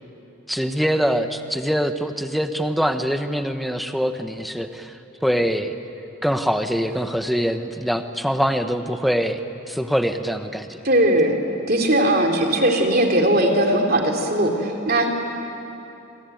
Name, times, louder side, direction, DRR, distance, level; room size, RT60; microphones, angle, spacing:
voice 1, 0.5-5.0 5.2-5.7 6.2-9.4 9.7-10.8, equal, ahead, 7 dB, 1.0 m, -23 dB
voice 2, 10.8-11.3 11.7-15.1, right 1 dB, 45° right, 2 dB, 3.0 m, -19 dB
26.0 x 24.5 x 9.2 m, 2.9 s
head